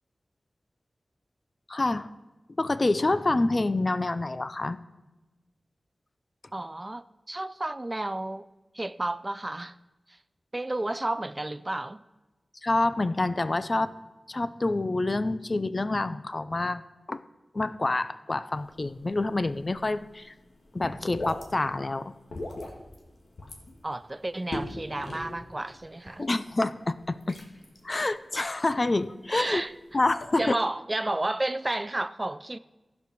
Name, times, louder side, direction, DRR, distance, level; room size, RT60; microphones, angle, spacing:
voice 1, 1.7-2.1 2.6-4.8 12.6-13.9 14.3-16.8 17.1-17.2 17.5-20.3 20.7-22.1 26.2-27.4 27.8-29.6 29.9-30.6, left 2 dB, 40° left, 0.4 m, -27 dB
voice 2, 6.5-8.5 8.7-9.8 10.5-12.0 23.8-26.3 29.3-29.7 30.4-32.6, right 2 dB, 25° right, 0.3 m, -31 dB
sound 1, 18.6-30.4, left 1 dB, 70° left, 1.7 m, -42 dB
14.5 x 5.3 x 6.1 m
wide cardioid pair, 95°, 0 cm